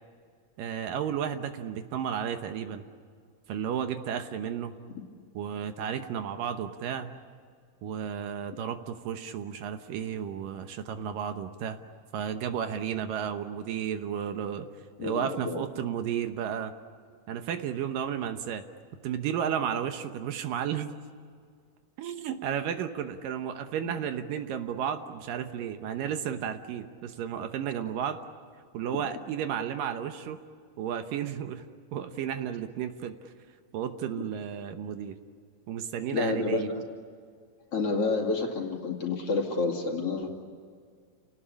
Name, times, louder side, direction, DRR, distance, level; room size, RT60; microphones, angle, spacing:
voice 1, 0.6-2.8 3.5-4.7 5.3-7.1 7.8-11.8 12.1-14.7 15.0-16.7 17.3-18.6 19.0-20.9 22.0-28.2 28.7-30.4 30.8-31.6 31.9-33.3 33.7-35.2 35.7-36.7, right 8 dB, 70° right, 7 dB, 2.6 m, -33 dB
voice 2, 15.0-15.6 36.1-36.8 37.7-40.3, left 3 dB, 45° left, 1 dB, 3.1 m, -29 dB
29.5 x 19.0 x 10.0 m, 2.1 s
omnidirectional pair, 4.3 m